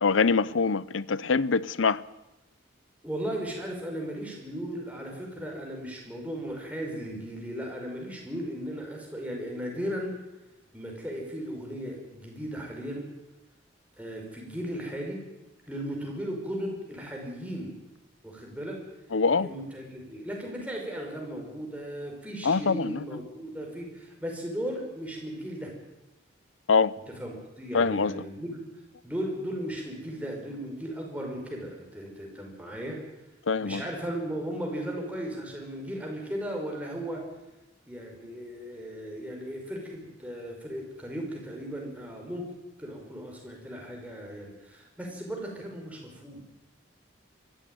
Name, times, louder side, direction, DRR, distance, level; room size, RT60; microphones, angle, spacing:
voice 1, 0.0-2.0 19.1-19.5 22.4-23.0 26.7-26.9 27.7-28.1 33.5-33.8, left 4 dB, 90° left, 0.7 m, -24 dB
voice 2, 3.0-10.1 10.7-13.1 14.0-15.2 15.7-17.7 18.2-18.8 19.4-25.7 27.2-28.6 29.0-33.0 33.6-37.2 37.9-42.5 42.8-46.4, equal, 5° right, 5.6 m, -36 dB
24.0 x 14.0 x 9.4 m
head